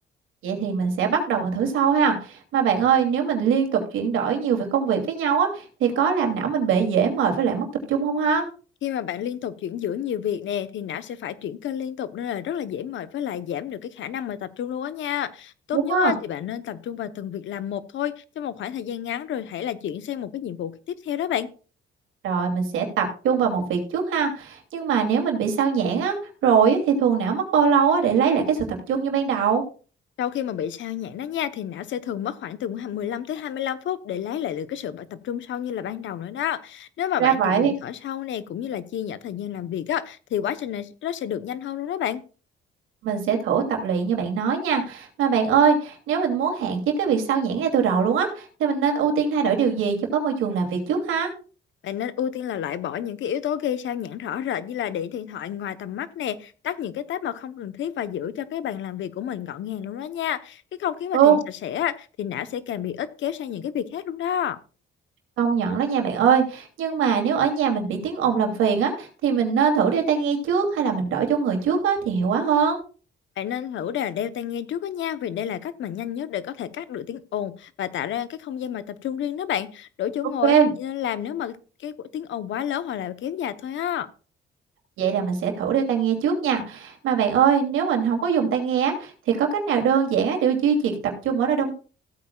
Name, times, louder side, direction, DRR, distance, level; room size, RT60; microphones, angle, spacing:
voice 1, 0.4-8.4 15.7-16.1 22.2-26.2 26.4-29.6 37.2-37.7 43.0-51.3 61.1-61.4 65.4-72.8 80.4-80.7 85.0-91.7, right 7 dB, 85° right, 2.8 m, -22 dB
voice 2, 8.8-21.5 30.2-42.2 51.8-64.6 73.4-84.1, left 10 dB, 70° left, 1.0 m, -30 dB
16.0 x 8.6 x 2.4 m
cardioid pair, 90°, 20 cm